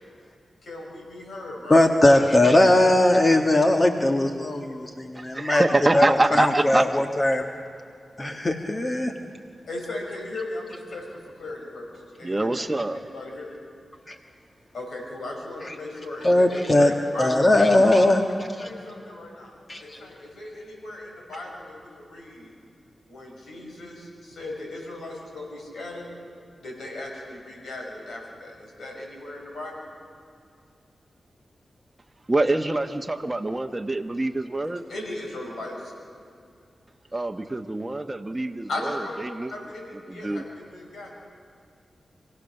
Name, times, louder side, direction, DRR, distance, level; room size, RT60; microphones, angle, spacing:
voice 1, 0.6-1.8 9.7-13.5 14.7-17.3 17.7-18.0 18.6-19.5 19.8-22.5 23.1-26.1 26.6-29.7 34.9-35.9 38.7-39.2 39.5-41.1, left 2 dB, 80° left, -1 dB, 6.3 m, -37 dB
voice 2, 1.7-5.6 5.9-6.1 6.3-7.4 8.2-9.1 16.2-16.9 17.2-18.2 19.7-19.8, left 1 dB, 35° left, 4 dB, 1.5 m, -19 dB
voice 3, 5.1-7.0 12.2-13.0 32.3-34.8 37.1-39.5 40.1-40.4, right 2 dB, 25° right, 4 dB, 1.1 m, -25 dB
27.0 x 16.5 x 6.6 m, 2.4 s
cardioid pair, 55°, 0 cm